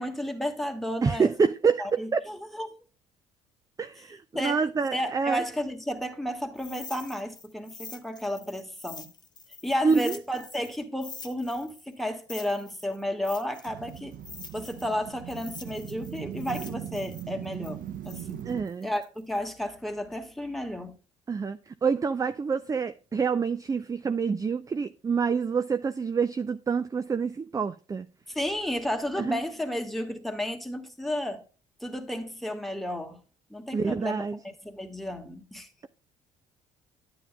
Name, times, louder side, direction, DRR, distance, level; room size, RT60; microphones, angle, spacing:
voice 1, 0.0-1.3 1.8-2.8 4.3-4.6 4.9-9.1 9.6-14.1 14.5-18.4 18.8-20.9 28.3-31.4 31.8-33.2 33.5-34.2 34.6-35.7, equal, ahead, 1.5 m, -32 dB
voice 2, 1.0-2.2 3.8-5.4 9.8-10.2 18.5-18.9 21.3-28.1 29.2-29.4 33.7-34.4, right 5 dB, 20° right, 0.4 m, -27 dB
sound 1, 6.5-10.7 11.0-14.9 15.3-19.4, left 4 dB, 25° left, 1.0 m, -46 dB
sound 2, 13.7-18.6, right 11 dB, 55° right, 0.7 m, -39 dB
9.9 x 8.6 x 2.2 m
hypercardioid pair, 60°, 16 cm